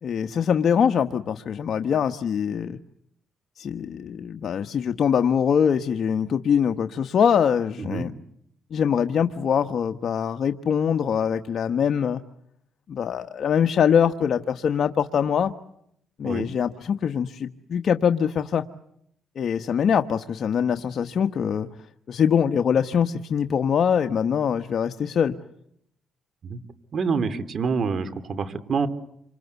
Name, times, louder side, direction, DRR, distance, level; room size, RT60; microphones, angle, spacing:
voice 1, 0.0-2.8 3.6-8.1 8.7-12.2 12.9-15.5 16.2-18.6 19.3-21.7 22.1-25.3, left 7 dB, 55° left, 6 dB, 1.1 m, -23 dB
voice 2, 26.9-28.9, right 5 dB, 50° right, 12 dB, 2.9 m, -27 dB
28.0 x 26.0 x 8.2 m, 0.75 s
cardioid pair, 90°, 0 cm